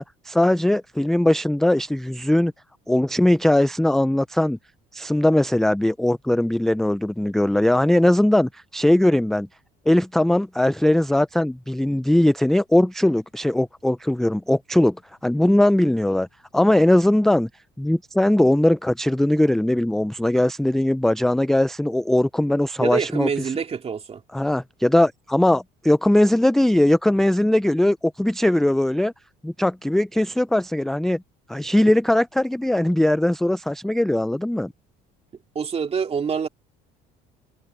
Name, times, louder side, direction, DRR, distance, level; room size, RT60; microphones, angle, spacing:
voice 1, 0.0-2.5 2.9-4.6 4.9-9.5 9.9-15.0 15.2-16.3 16.5-17.5 17.8-23.3 24.3-29.1 29.4-31.2 31.5-34.7, left 1 dB, ahead, 0.3 m, -20 dB
voice 2, 22.8-24.2 35.5-36.5, right 6 dB, 35° right, 2.4 m, -26 dB
cardioid pair, 100°, 18 cm